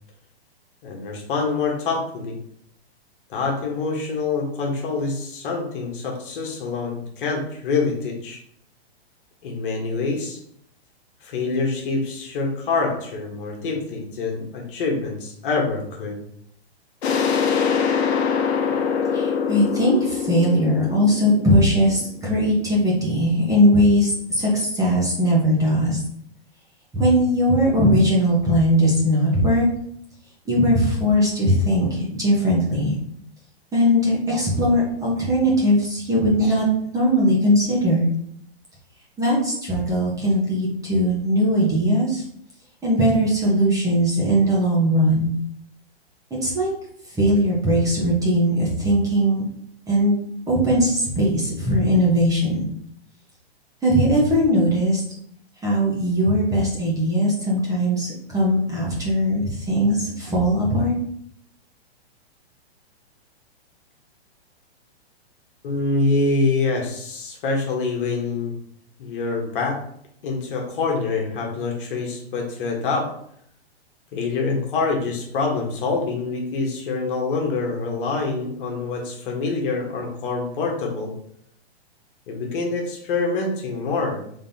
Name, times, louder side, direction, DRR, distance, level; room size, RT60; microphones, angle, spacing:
voice 1, 0.8-2.4 3.3-8.4 9.4-10.4 11.2-16.2 65.6-68.5 69.0-69.8 70.2-73.2 74.1-81.1 82.3-84.2, left 3 dB, 55° left, 0 dB, 1.4 m, -25 dB
sound 1, 17.0-22.5, left 6 dB, 75° left, 0.9 m, -24 dB
voice 2, 19.1-26.0 26.9-29.7 30.5-33.0 33.7-36.7 36.9-38.0 39.2-42.2 42.8-45.3 46.4-46.7 47.1-49.4 49.9-50.1 50.5-52.7 53.8-55.0 55.6-60.9, equal, 10° right, -5 dB, 1.2 m, -19 dB
5.2 x 3.6 x 2.8 m, 0.67 s
hypercardioid pair, 140°, 32 cm